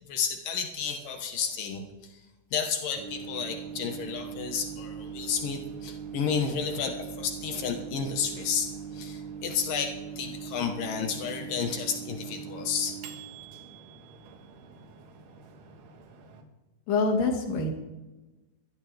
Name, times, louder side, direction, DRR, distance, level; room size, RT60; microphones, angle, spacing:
voice 1, 0.1-2.2 2.5-13.0, left 6 dB, 70° left, 4 dB, 2.0 m, -32 dB
Microwave oven, 3.0-16.4, right 7 dB, 85° right, 4.3 m, -41 dB
voice 2, 16.9-17.8, left 3 dB, 50° left, 2 dB, 3.2 m, -26 dB
22.5 x 15.0 x 3.5 m, 1.1 s
omnidirectional pair, 5.9 m